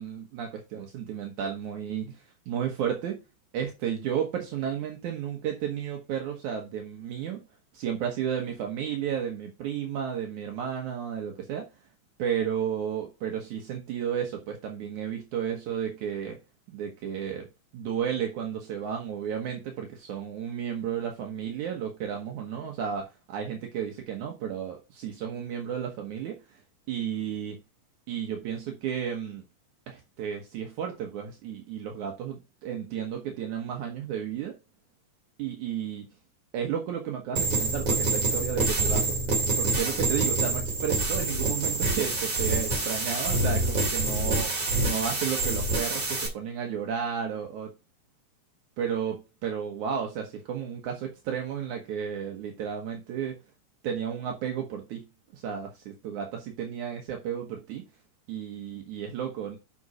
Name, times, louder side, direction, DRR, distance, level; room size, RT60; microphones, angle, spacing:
voice 1, 0.0-3.2 3.5-7.4 7.7-11.7 12.2-16.4 16.7-17.5 17.7-26.6 26.9-27.6 28.1-29.4 29.9-34.6 35.4-36.1 36.5-39.2 39.6-47.7 48.8-53.3 53.8-55.0 55.3-57.8 58.3-59.6, right 8 dB, 75° right, 2.6 m, -33 dB
sound 1, 37.4-46.3, right 2 dB, 40° right, 3.4 m, -26 dB
7.0 x 5.3 x 4.9 m
omnidirectional pair, 3.5 m